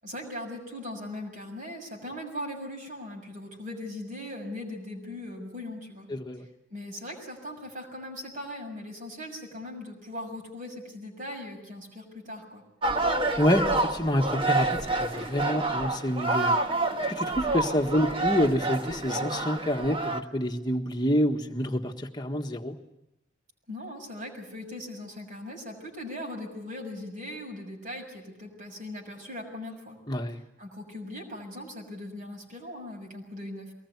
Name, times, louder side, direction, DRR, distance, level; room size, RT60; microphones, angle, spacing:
voice 1, 0.0-6.1 6.7-12.6 23.7-30.0 30.6-33.7, left 1 dB, 45° right, 0 dB, 6.6 m, -39 dB
voice 2, 6.1-6.4 13.4-16.6 17.1-22.8 30.1-30.4, equal, 20° left, 3 dB, 1.6 m, -27 dB
sound 1, 12.8-20.2, right 2 dB, 30° right, 1.4 m, -28 dB
23.5 x 20.0 x 9.6 m, 0.90 s
head